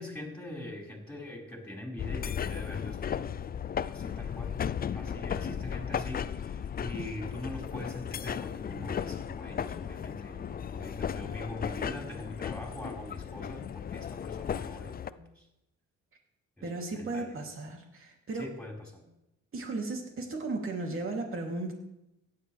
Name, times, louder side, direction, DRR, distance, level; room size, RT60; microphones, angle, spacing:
voice 1, 0.0-3.4 3.9-4.5 4.9-15.5 16.6-17.4 18.3-19.1, left 1 dB, 5° left, -2 dB, 4.6 m, -43 dB
sound 1, 2.0-15.1, left 8 dB, 30° left, 0.4 m, -35 dB
voice 2, 16.6-18.5 19.5-21.7, right 3 dB, 45° right, 1 dB, 2.9 m, -35 dB
16.0 x 10.5 x 3.4 m, 0.88 s
cardioid pair, 90°, 30 cm